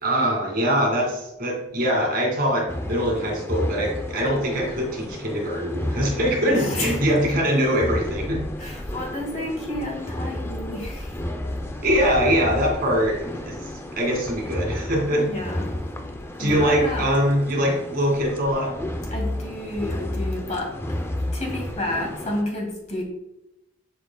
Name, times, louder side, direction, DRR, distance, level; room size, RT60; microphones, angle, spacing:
voice 1, 0.0-8.4 11.8-15.3 16.4-18.7, equal, 55° right, -1 dB, 2.1 m, -23 dB
sound 1, 2.7-22.4, left 1 dB, 15° left, 0.5 m, -32 dB
voice 2, 6.5-7.0 8.6-11.2 15.1-15.7 16.4-17.0 19.1-20.7 21.3-23.0, left 1 dB, 40° left, -1 dB, 2.1 m, -30 dB
7.2 x 6.4 x 2.2 m, 0.87 s
head